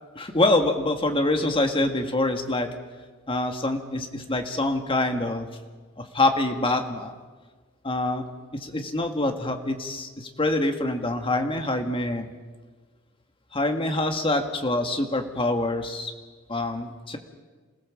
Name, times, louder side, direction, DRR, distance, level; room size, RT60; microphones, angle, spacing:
voice 1, 0.2-2.7 3.3-5.5 6.0-7.1 7.8-8.2 8.5-12.3 13.5-16.1 16.5-17.2, left 2 dB, 25° left, 5 dB, 1.9 m, -25 dB
27.5 x 16.5 x 7.4 m, 1.4 s
head